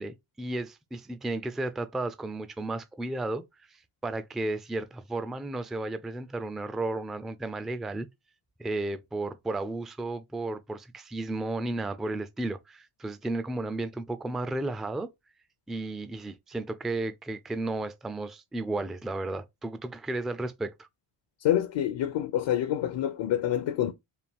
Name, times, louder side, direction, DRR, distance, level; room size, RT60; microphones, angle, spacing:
voice 1, 0.0-3.8 4.0-8.1 8.6-15.1 15.7-20.9, right 2 dB, ahead, 0.3 m, -33 dB
voice 2, 21.4-23.9, left 11 dB, 65° left, 0.7 m, -27 dB
4.3 x 2.3 x 3.5 m
cardioid pair, 95°, 49 cm